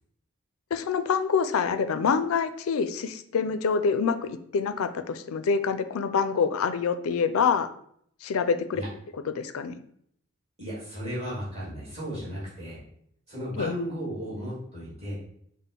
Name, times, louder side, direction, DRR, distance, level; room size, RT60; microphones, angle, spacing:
voice 1, 0.7-7.7 8.2-8.8 9.3-9.8 13.6-13.7, left 6 dB, 80° left, 10 dB, 0.4 m, -26 dB
voice 2, 10.6-12.8 13.3-15.2, equal, 30° right, -8 dB, 1.8 m, -35 dB
5.5 x 2.1 x 3.7 m, 0.67 s
head